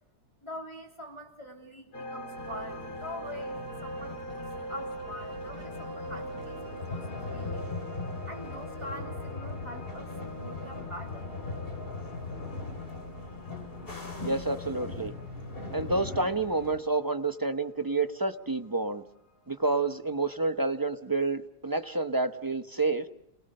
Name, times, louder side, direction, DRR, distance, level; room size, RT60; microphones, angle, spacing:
voice 1, 0.4-7.7 8.3-11.3, left 1 dB, 15° left, 1 dB, 3.3 m, -44 dB
sound 1, 1.9-18.9, right 1 dB, 60° left, 4.5 m, -43 dB
sound 2, 2.4-16.8, left 3 dB, 30° left, 3.6 m, -40 dB
voice 2, 14.2-15.1 15.7-19.0 19.5-23.1, right 3 dB, 30° right, 7 dB, 0.4 m, -29 dB
29.5 x 19.5 x 6.7 m, 0.84 s
omnidirectional pair, 1.9 m